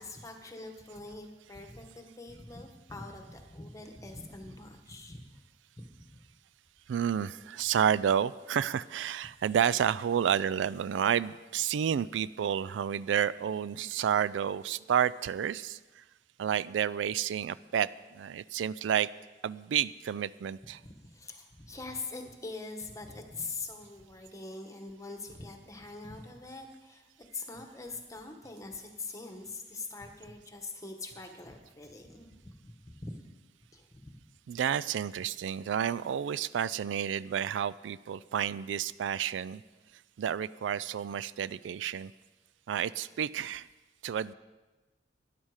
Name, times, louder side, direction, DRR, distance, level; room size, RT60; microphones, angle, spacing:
voice 1, 0.0-5.3 5.8-6.2 20.8-33.2 33.7-34.2, left 3 dB, 20° left, 4 dB, 1.3 m, -43 dB
voice 2, 6.9-16.0 16.4-19.1 19.4-20.8 34.5-39.6 40.2-42.1 42.7-43.7 44.0-44.3, right 8 dB, 85° right, 18 dB, 0.3 m, -30 dB
13.0 x 10.5 x 4.9 m, 1.2 s
head